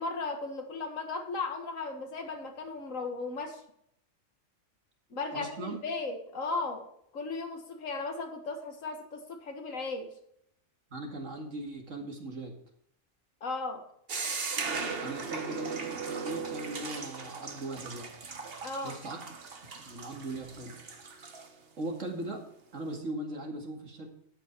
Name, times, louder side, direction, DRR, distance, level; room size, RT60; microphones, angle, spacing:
voice 1, 0.0-3.6 5.1-6.9 7.1-10.1 13.4-13.8 18.6-19.0, left 3 dB, 70° left, 4 dB, 2.1 m, -36 dB
voice 2, 5.3-5.8 10.9-12.6 15.0-18.1 18.8-19.2 19.8-20.8 21.8-22.4 22.7-24.1, right 2 dB, 65° right, 2 dB, 2.6 m, -39 dB
sound 1, 14.1-21.5, right 4 dB, 45° right, 1.5 m, -38 dB
13.0 x 8.5 x 4.6 m, 0.71 s
omnidirectional pair, 1.4 m